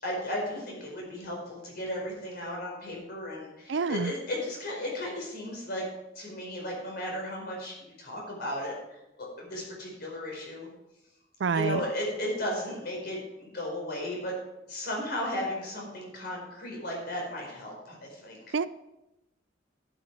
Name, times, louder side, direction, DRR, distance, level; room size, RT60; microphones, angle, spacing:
voice 1, 0.0-5.8 6.1-10.7 11.5-14.3 14.7-18.5, left 1 dB, 60° left, -1 dB, 4.8 m, -35 dB
voice 2, 3.7-4.1 11.4-11.8 18.5-18.7, right 5 dB, 90° right, 16 dB, 0.5 m, -27 dB
11.5 x 9.5 x 4.7 m, 0.93 s
head